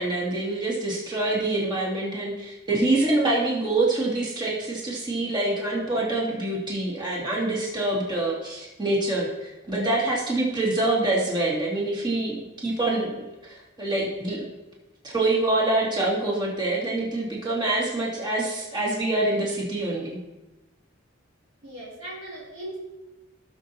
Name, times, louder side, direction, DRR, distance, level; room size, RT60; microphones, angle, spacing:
voice 1, 0.0-14.5 15.0-20.2, right 2 dB, 25° right, -5 dB, 2.5 m, -26 dB
voice 2, 21.6-22.8, right 1 dB, 75° right, -7 dB, 3.0 m, -38 dB
17.5 x 6.8 x 2.9 m, 1.1 s
head